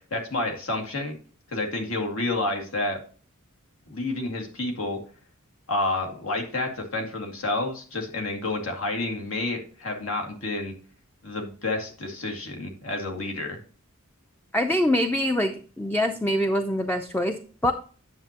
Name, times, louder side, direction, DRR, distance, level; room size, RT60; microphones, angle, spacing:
voice 1, 0.1-1.2 1.5-3.0 3.9-5.0 5.7-10.7 11.2-13.6, left 2 dB, 75° left, 3 dB, 2.1 m, -29 dB
voice 2, 14.5-17.7, left 1 dB, 10° left, 6 dB, 0.5 m, -24 dB
9.5 x 7.2 x 2.9 m, 0.40 s
head